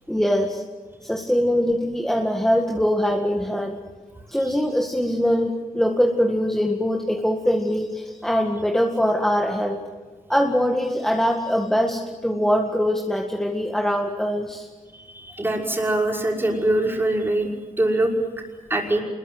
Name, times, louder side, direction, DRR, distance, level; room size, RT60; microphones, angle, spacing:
voice 1, 0.1-0.6 1.0-3.8 4.3-9.8 10.3-14.7, equal, 5° left, 1 dB, 1.9 m, -22 dB
voice 2, 14.9-17.5 17.8-18.1 18.7-19.0, right 1 dB, 15° right, -1 dB, 5.7 m, -23 dB
27.5 x 22.0 x 8.0 m, 1.4 s
wide cardioid pair, 130°, 13 cm